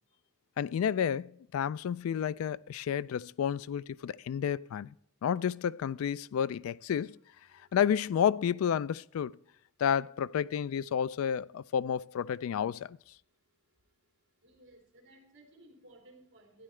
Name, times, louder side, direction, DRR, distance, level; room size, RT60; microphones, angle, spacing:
voice 1, 0.6-4.9 5.2-7.2 7.7-9.3 9.8-13.0, left 8 dB, 80° left, 0.3 m, -31 dB
voice 2, 14.4-16.6, right 1 dB, 60° right, 3.3 m, -57 dB
12.5 x 10.0 x 3.2 m
head